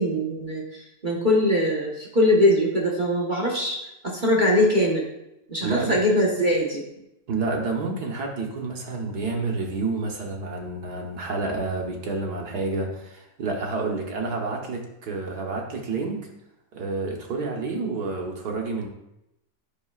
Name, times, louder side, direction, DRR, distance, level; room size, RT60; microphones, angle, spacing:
voice 1, 0.0-3.8 4.0-5.1 5.5-6.8, left 1 dB, 30° right, -3 dB, 1.2 m, -22 dB
voice 2, 5.6-5.9 7.3-16.2 16.7-18.9, right 3 dB, 65° right, 1 dB, 1.6 m, -29 dB
10.5 x 6.5 x 2.4 m, 0.87 s
omnidirectional pair, 2.0 m